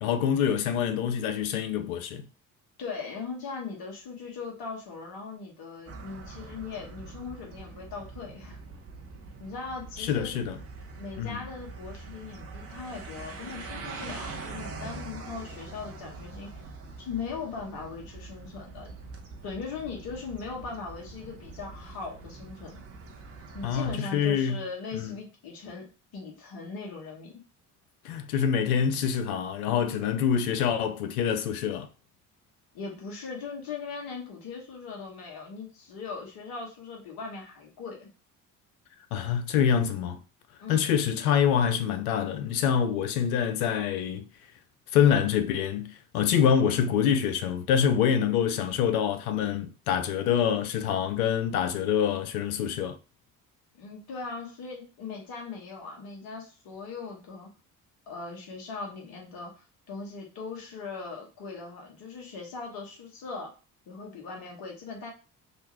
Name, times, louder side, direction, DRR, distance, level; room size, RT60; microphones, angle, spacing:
voice 1, 0.0-2.3 10.0-10.6 11.2-11.4 23.6-24.6 24.9-25.1 28.0-31.9 39.1-40.2 40.7-44.2 44.9-53.0, left 8 dB, 75° left, 0.5 m, -26 dB
voice 2, 2.8-8.6 9.4-10.3 11.0-16.6 17.0-18.9 19.4-22.8 23.5-25.9 26.1-27.4 32.7-38.1 40.6-40.9 53.7-57.5 58.1-63.5 63.9-65.1, left 4 dB, 55° left, 1.1 m, -39 dB
sound 1, 5.9-23.9, right 3 dB, 35° right, 0.7 m, -43 dB
2.9 x 2.3 x 2.8 m
figure-of-eight pair, 50°, 44 cm